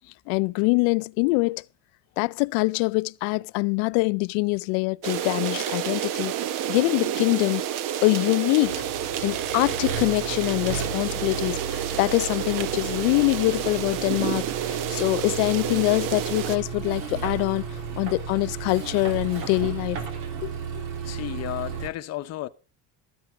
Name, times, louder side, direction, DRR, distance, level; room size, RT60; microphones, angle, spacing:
voice 1, 0.3-1.6 2.2-6.3 6.7-7.6 8.0-8.8 9.2-17.6 18.0-20.0 20.4-20.8, left 26 dB, 85° left, 0.5 m, -24 dB
sound 1, 5.0-16.6, right 10 dB, 55° right, 0.9 m, -30 dB
Accelerating revving vroom, 8.6-21.9, right 6 dB, 90° right, 2.9 m, -34 dB
voice 2, 21.0-22.5, left 15 dB, 40° left, 0.8 m, -33 dB
13.5 x 9.3 x 4.9 m
cardioid pair, 145°, 38 cm